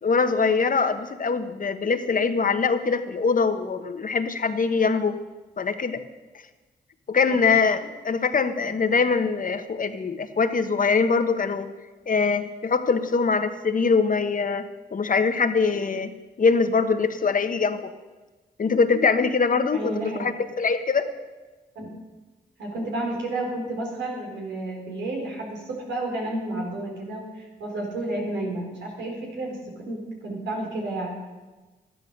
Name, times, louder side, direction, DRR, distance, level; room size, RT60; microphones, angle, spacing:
voice 1, 0.0-5.2 5.6-6.0 7.1-11.7 12.1-14.6 14.9-16.1 16.4-17.9 18.6-21.1, left 5 dB, 50° left, 8 dB, 1.3 m, -23 dB
voice 2, 19.7-20.3 21.8-21.9 22.6-31.1, right 2 dB, 85° right, -1 dB, 4.1 m, -31 dB
13.0 x 11.0 x 6.8 m, 1.2 s
supercardioid pair, 50°, 18 cm